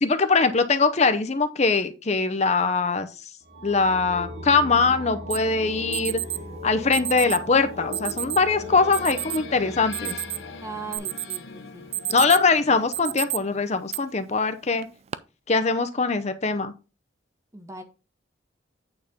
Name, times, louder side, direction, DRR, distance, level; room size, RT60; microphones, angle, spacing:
voice 1, 0.0-3.1 3.6-6.2 6.6-10.2 12.1-14.9 15.5-16.7, left 4 dB, 35° left, 0.7 m, -22 dB
sound 1, 3.4-11.0, equal, 80° right, 3.2 m, -38 dB
Alarm, 5.3-5.4 5.9-6.4 6.9-7.4 7.9-8.4 8.9-9.4 9.8-10.5 10.9-11.4 11.8-12.5 12.9-13.4 13.9-14.0 14.8-15.2, right 14 dB, 35° right, 0.4 m, -30 dB
sound 2, 7.7-13.9, left 5 dB, 70° left, 0.9 m, -42 dB
voice 2, 10.6-11.9 17.5-17.8, right 4 dB, 15° right, 1.1 m, -38 dB
8.8 x 4.2 x 5.0 m
head